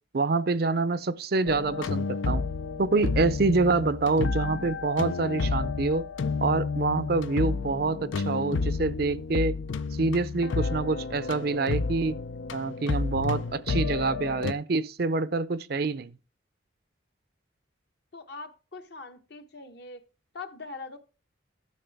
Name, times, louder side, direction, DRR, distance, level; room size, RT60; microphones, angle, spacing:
voice 1, 0.1-2.4 2.8-6.1 6.4-9.6 10.0-12.2 12.5-16.1, right 3 dB, 50° right, 0.5 m, -26 dB
sound 1, 1.5-14.5, left 4 dB, 75° left, 0.5 m, -31 dB
voice 2, 18.1-20.0 20.3-21.0, left 3 dB, 55° left, 1.1 m, -42 dB
12.5 x 7.3 x 3.4 m
head